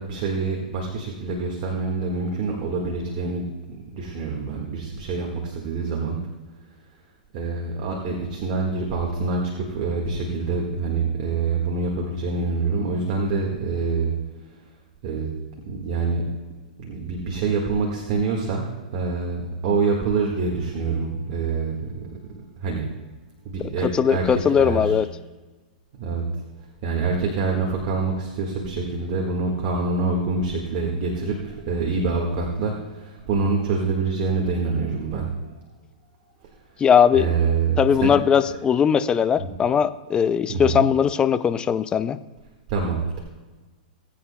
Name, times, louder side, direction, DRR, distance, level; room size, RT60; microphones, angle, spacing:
voice 1, 0.0-6.2 7.3-14.1 15.0-15.3 15.7-16.2 16.8-22.0 22.6-22.9 23.5-25.0 26.0-26.3 26.8-35.3 37.1-38.1 39.4-39.5 40.5-40.8 42.7-43.2, right 4 dB, 45° right, -1 dB, 1.7 m, -26 dB
voice 2, 23.8-25.1 36.8-37.3 37.8-42.2, left 8 dB, 20° left, 13 dB, 0.4 m, -19 dB
20.0 x 8.6 x 2.3 m, 1.3 s
hypercardioid pair, 120°, 5 cm